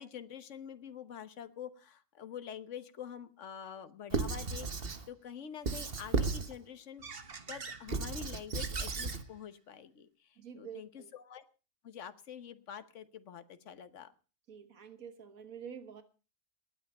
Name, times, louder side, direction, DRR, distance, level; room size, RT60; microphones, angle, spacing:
voice 1, 0.0-4.7 5.1-11.4 11.8-14.1, left 8 dB, 60° left, 11 dB, 1.4 m, -47 dB
Squeak / Writing, 4.1-5.0 5.7-6.5 7.0-9.2, right 4 dB, 45° right, 1.4 m, -35 dB
voice 2, 10.4-11.1 14.5-16.0, right 7 dB, 85° right, 9 dB, 1.8 m, -48 dB
19.0 x 9.8 x 5.4 m, 0.35 s
omnidirectional pair, 1.4 m